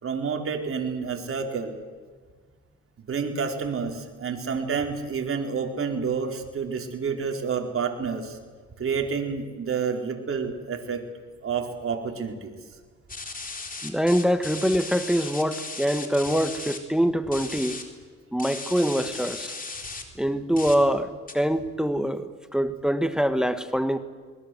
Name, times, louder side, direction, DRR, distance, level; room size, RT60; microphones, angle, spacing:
voice 1, 0.0-1.7 3.1-8.4 8.8-11.0 11.4-12.5, right 5 dB, 45° right, 3 dB, 4.7 m, -29 dB
sound 1, 13.1-16.8 17.3-17.8 18.4-20.0 20.6-20.8 21.3-21.4, left 3 dB, 30° left, 3.9 m, -36 dB
voice 2, 13.8-17.8 18.3-19.5 20.2-24.0, equal, ahead, 10 dB, 1.6 m, -24 dB
27.5 x 21.5 x 7.9 m, 1.6 s
cardioid pair, 90°, 30 cm